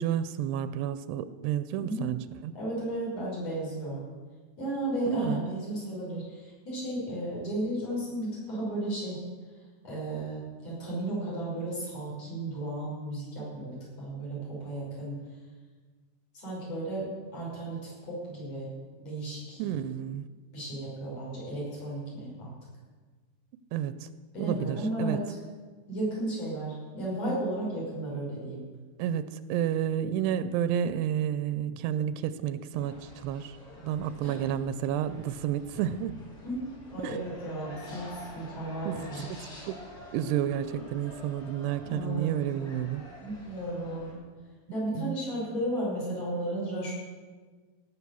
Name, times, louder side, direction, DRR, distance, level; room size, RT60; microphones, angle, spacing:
voice 1, 0.0-2.5 5.1-5.4 19.6-20.3 23.7-24.1 24.4-25.2 29.0-33.6 33.8-36.1 37.0-37.2 38.9-39.8 40.1-43.0 45.0-45.2, right 10 dB, 90° right, 13 dB, 2.7 m, -31 dB
voice 2, 1.8-2.1 2.5-4.0 4.6-9.2 9.8-15.2 16.3-18.7 19.0-19.6 20.5-22.5 24.3-25.4 25.9-28.6 34.2-34.4 36.4-39.2 41.8-42.4 43.2-44.2 44.7-46.9, right 1 dB, 40° left, -5 dB, 6.6 m, -34 dB
sound 1, 32.7-44.1, left 1 dB, 20° left, 4.8 m, -48 dB
17.5 x 8.3 x 7.0 m, 1.4 s
omnidirectional pair, 4.7 m